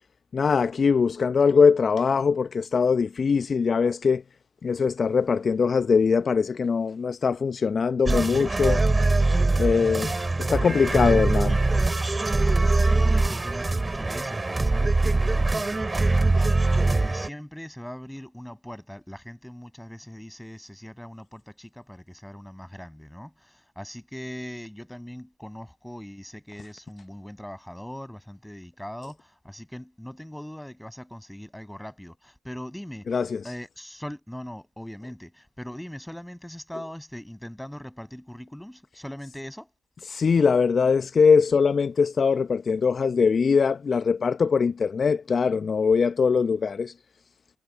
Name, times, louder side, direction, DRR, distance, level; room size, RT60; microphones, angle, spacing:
voice 1, 0.3-4.2 4.6-8.8 9.6-11.6 33.1-33.4 40.1-46.9, left 5 dB, 50° left, 0.8 m, -22 dB
sound 1, 8.1-17.3, right 2 dB, 25° right, 4.8 m, -23 dB
voice 2, 12.4-16.5 16.8-33.1 33.4-39.7, equal, 5° left, 7.5 m, -41 dB
hypercardioid pair, 40°, 0 cm